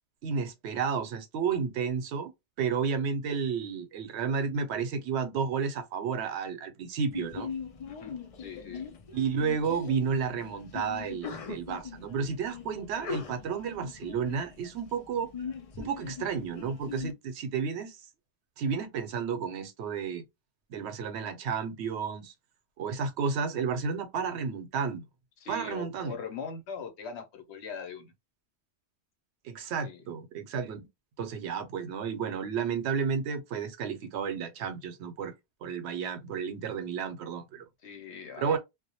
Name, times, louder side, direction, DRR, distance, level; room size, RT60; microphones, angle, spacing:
voice 1, 0.2-2.3 2.6-7.5 9.1-15.3 15.8-18.0 18.6-20.2 20.7-22.3 22.8-25.0 25.5-26.2 29.4-30.9 31.2-35.3 35.6-37.7 38.4-38.6, right 6 dB, 85° right, 0.9 m, -32 dB
Sneeze, 7.1-17.1, left 6 dB, 55° left, 0.4 m, -41 dB
voice 2, 7.8-8.9 25.4-28.1 29.8-30.0 37.8-38.6, left 5 dB, 85° left, 1.0 m, -41 dB
2.2 x 2.1 x 2.8 m
omnidirectional pair, 1.1 m